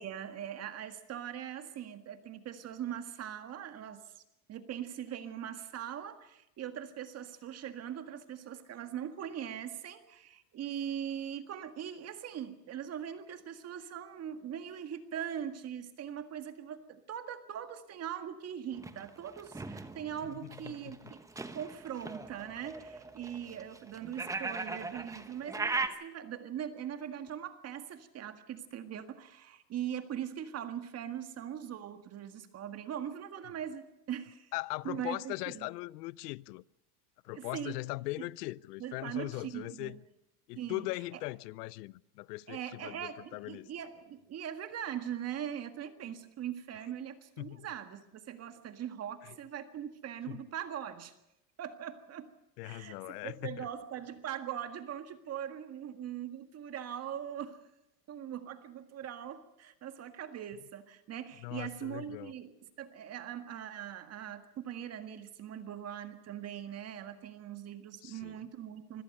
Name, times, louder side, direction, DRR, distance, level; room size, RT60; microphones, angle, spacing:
voice 1, 0.0-4.2 4.5-21.2 21.5-34.5 34.8-35.7 37.3-37.7 38.8-39.9 40.6-40.8 42.5-51.1 51.6-52.3 52.6-53.0 53.2-57.6 58.1-62.5 62.8-69.0, right 9 dB, 30° right, 1.8 m, -41 dB
sound 1, 18.7-25.9, right 3 dB, 5° right, 1.0 m, -39 dB
voice 2, 20.3-21.1 34.5-36.6 37.2-40.0 40.5-43.7 47.4-47.7 49.2-49.4 50.3-50.4 52.6-53.7 61.4-62.3 68.0-68.4, left 21 dB, 75° left, 0.7 m, -40 dB
25.0 x 17.0 x 6.7 m
supercardioid pair, 135°, 48 cm